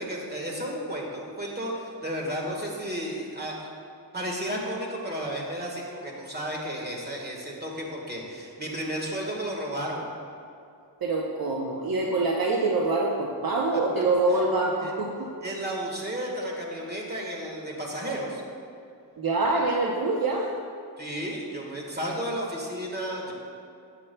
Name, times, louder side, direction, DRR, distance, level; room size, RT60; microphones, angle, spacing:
voice 1, 0.0-3.7 4.1-10.0 13.9-14.0 14.3-14.4 14.8-14.9 15.4-18.4 21.0-23.3, equal, 20° right, -2 dB, 1.5 m, -33 dB
voice 2, 11.0-15.3 19.2-20.5, right 2 dB, 50° right, -2 dB, 0.8 m, -25 dB
13.5 x 8.4 x 2.3 m, 2.5 s
wide cardioid pair, 125°, 44 cm